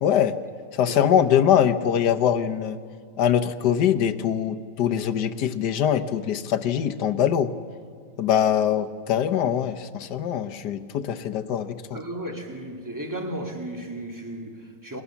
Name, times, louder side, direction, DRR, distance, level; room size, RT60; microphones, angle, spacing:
voice 1, 0.0-0.4 0.7-2.8 3.2-7.5 8.2-12.0, left 9 dB, 75° left, 11 dB, 1.6 m, -23 dB
voice 2, 0.8-1.2 11.9-15.0, right 1 dB, 10° right, 3 dB, 2.0 m, -34 dB
29.0 x 23.5 x 7.1 m, 2.1 s
omnidirectional pair, 1.8 m